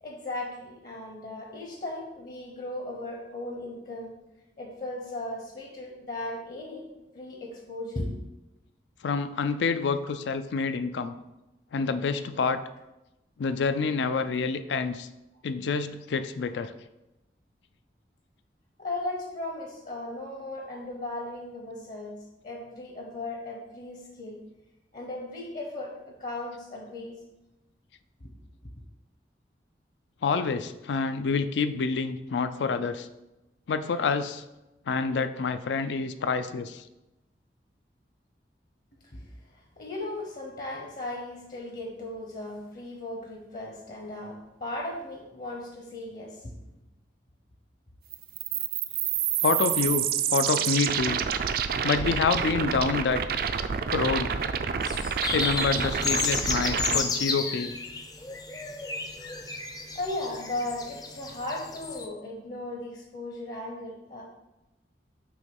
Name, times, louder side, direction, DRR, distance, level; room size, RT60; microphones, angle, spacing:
voice 1, 0.0-4.2 4.6-6.8 7.1-8.1 18.8-22.2 22.4-24.4 24.9-27.2 28.2-28.3 39.0-46.5 59.9-64.2, left 2 dB, 50° left, -1 dB, 0.9 m, -37 dB
voice 2, 9.0-11.1 11.7-12.6 13.4-15.1 15.4-16.7 30.2-33.1 33.7-34.4 34.9-36.8 49.4-50.0 50.3-51.2 51.8-53.2 53.9-54.4 55.3-57.7, left 5 dB, 85° left, 11 dB, 0.4 m, -27 dB
sound 1, 48.1-57.0, right 8 dB, 55° right, 0.3 m, -28 dB
sound 2, 54.8-62.1, left 4 dB, 20° left, 0.4 m, -32 dB
6.5 x 3.0 x 5.3 m, 0.97 s
head